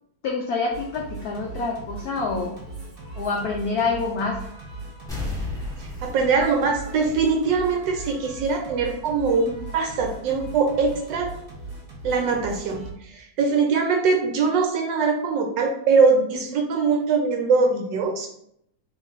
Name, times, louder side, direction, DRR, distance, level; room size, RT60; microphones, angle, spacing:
voice 1, 0.2-2.5 3.1-4.4, left 4 dB, 90° left, -1 dB, 0.8 m, -26 dB
Singing, 0.7-12.9, right 2 dB, 40° right, 0.9 m, -39 dB
sound 1, 5.1-7.7 8.0-8.1, left 2 dB, 5° left, 0.4 m, -34 dB
voice 2, 6.0-11.3 12.0-18.3, right 4 dB, 75° right, 2 dB, 1.1 m, -22 dB
3.2 x 2.9 x 3.9 m, 0.71 s
omnidirectional pair, 2.3 m